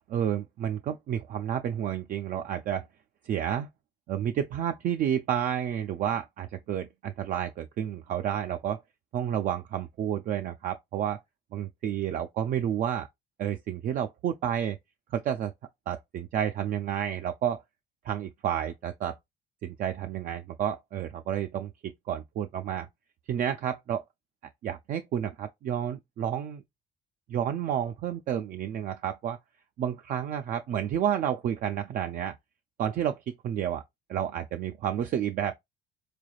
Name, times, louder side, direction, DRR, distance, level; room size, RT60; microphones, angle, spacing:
voice 1, 0.1-2.9 3.2-3.7 4.1-8.8 9.1-11.2 11.5-13.1 13.4-14.8 15.1-15.5 15.9-17.6 18.0-19.2 19.6-22.9 23.3-24.0 24.6-26.6 27.3-29.4 29.8-32.4 32.8-33.8 34.1-35.5, right 9 dB, 55° right, 0.4 m, -30 dB
3.9 x 3.3 x 2.3 m
cardioid pair, 110°, 17 cm